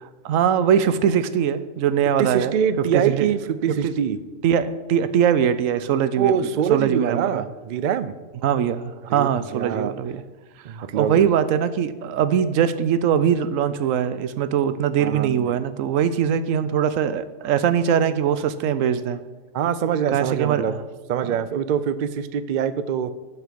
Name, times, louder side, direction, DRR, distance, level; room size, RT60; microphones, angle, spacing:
voice 1, 0.2-2.6 2.9-3.3 3.8-3.9 4.4-7.4 8.4-10.2 10.7-19.2 20.1-20.8 21.2-21.3, right 8 dB, 80° right, 13 dB, 1.0 m, -22 dB
voice 2, 2.2-4.2 6.2-8.1 9.1-9.9 10.6-11.3 15.0-15.5 19.5-20.7 21.1-23.1, right 8 dB, 65° right, 13 dB, 0.4 m, -24 dB
7.4 x 5.8 x 6.8 m, 1.2 s
omnidirectional pair, 1.3 m